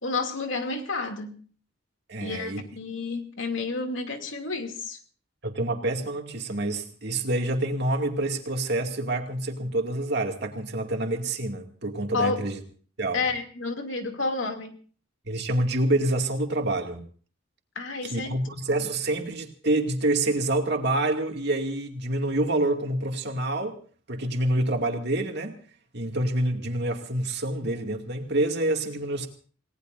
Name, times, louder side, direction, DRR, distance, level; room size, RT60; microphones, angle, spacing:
voice 1, 0.0-1.4 2.2-5.0 12.1-12.4 13.1-14.7 17.8-18.3 18.8-18.9, left 3 dB, 90° left, 4 dB, 2.7 m, -30 dB
voice 2, 2.1-2.6 5.4-12.6 13.0-13.2 15.3-17.0 18.0-23.8 24.1-25.5 25.9-29.3, right 1 dB, 60° right, 3 dB, 2.4 m, -27 dB
28.5 x 18.5 x 2.6 m, 0.43 s
head